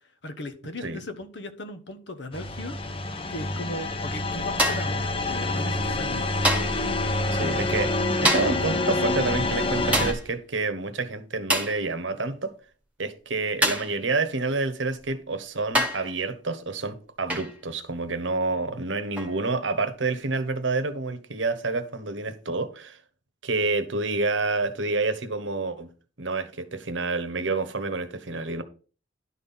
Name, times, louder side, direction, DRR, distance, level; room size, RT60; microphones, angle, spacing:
voice 1, 0.2-6.3, left 1 dB, 70° left, 1.1 m, -38 dB
sound 1, 2.3-10.1, left 2 dB, 30° left, 0.9 m, -27 dB
sound 2, 4.6-5.0 6.4-6.8 8.2-8.7 9.9-10.3 11.5-11.8 13.6-14.0 15.0-15.1 15.7-16.1 17.3-17.6 19.2-19.4, right 1 dB, 10° right, 1.4 m, -25 dB
voice 2, 7.3-12.5 13.0-23.0 23.4-25.9 26.2-28.6, right 3 dB, 80° right, 1.1 m, -28 dB
11.0 x 4.2 x 5.5 m
head